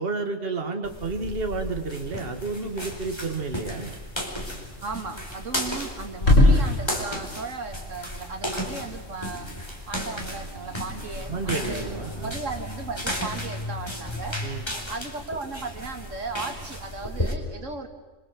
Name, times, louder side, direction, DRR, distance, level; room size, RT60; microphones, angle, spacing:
voice 1, 0.0-4.0 11.3-12.3 14.4-14.7, right 3 dB, 50° right, 5 dB, 2.1 m, -31 dB
sound 1, 0.8-17.3, equal, 20° left, 4.4 m, -34 dB
sound 2, 2.2-11.1, left 1 dB, 70° left, 6.2 m, -28 dB
voice 2, 4.8-9.5 9.9-14.4 14.9-17.9, right 3 dB, 75° right, 5 dB, 2.5 m, -36 dB
27.5 x 24.5 x 7.9 m, 1.2 s
omnidirectional pair, 1.3 m